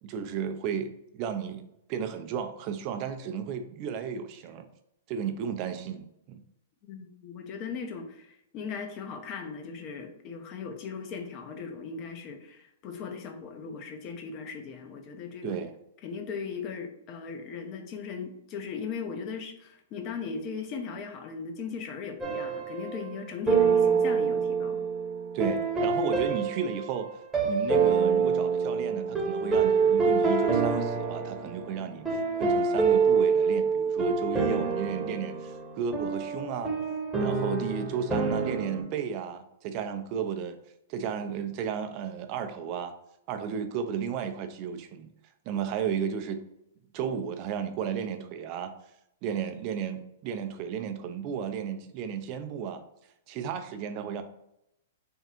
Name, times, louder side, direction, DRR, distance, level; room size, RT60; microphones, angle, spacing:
voice 1, 0.0-4.7 5.1-6.4 15.4-15.7 25.3-27.1 27.4-36.7 37.2-40.6 40.9-42.9 43.3-45.1 45.5-46.4 46.9-48.7 49.2-52.8 53.3-54.2, right 7 dB, 40° right, 0.5 m, -33 dB
voice 2, 6.8-15.6 16.0-24.8, left 5 dB, 35° left, 0.7 m, -38 dB
sound 1, 22.2-23.1 23.5-38.8, right 5 dB, 10° right, 1.0 m, -26 dB
3.5 x 2.3 x 4.3 m
hypercardioid pair, 125°, 0 cm